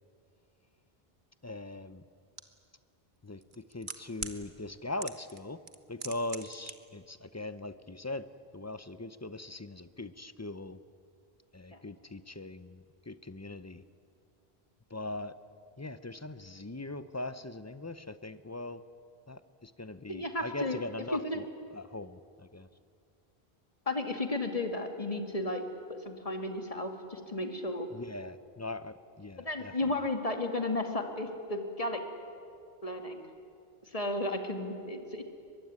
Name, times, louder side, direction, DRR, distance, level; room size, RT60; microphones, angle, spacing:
voice 1, 1.4-2.0 3.2-5.6 5.9-8.3 8.5-10.8 11.5-13.8 14.9-15.4 15.8-18.8 19.3-22.7 27.9-29.9, left 2 dB, 20° left, 13 dB, 0.6 m, -41 dB
sound 1, 2.4-2.5 3.4-4.4 5.0-5.4 5.7-6.7 7.0-7.1, right 4 dB, 50° right, 1.5 m, -39 dB
voice 2, 20.1-20.8 21.1-21.4 23.9-25.6 25.9-27.9 29.4-32.0 32.8-33.3 33.9-35.2, left 2 dB, 35° left, 4 dB, 2.3 m, -33 dB
23.0 x 22.5 x 9.6 m, 2.4 s
omnidirectional pair, 1.1 m